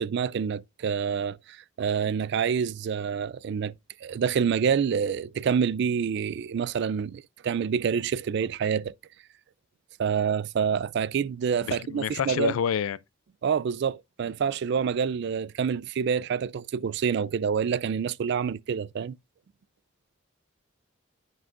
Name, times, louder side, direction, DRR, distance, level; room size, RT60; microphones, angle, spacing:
voice 1, 0.0-1.4 1.8-3.7 4.0-8.9 10.0-12.6 13.4-19.2, right 7 dB, 55° right, 0.3 m, -27 dB
voice 2, 11.6-13.0, left 8 dB, 90° left, 0.4 m, -28 dB
9.4 x 5.8 x 2.5 m
head